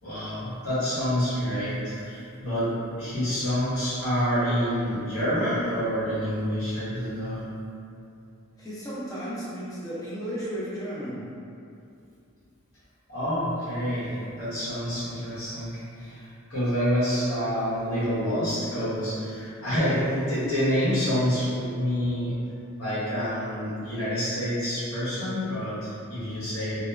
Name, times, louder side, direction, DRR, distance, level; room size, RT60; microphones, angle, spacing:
voice 1, 0.0-7.6 13.1-22.3 22.8-26.9, equal, 80° left, -11 dB, 1.0 m, -27 dB
voice 2, 8.6-11.3, equal, 15° left, -9 dB, 0.4 m, -34 dB
2.8 x 2.1 x 2.3 m, 2.6 s
head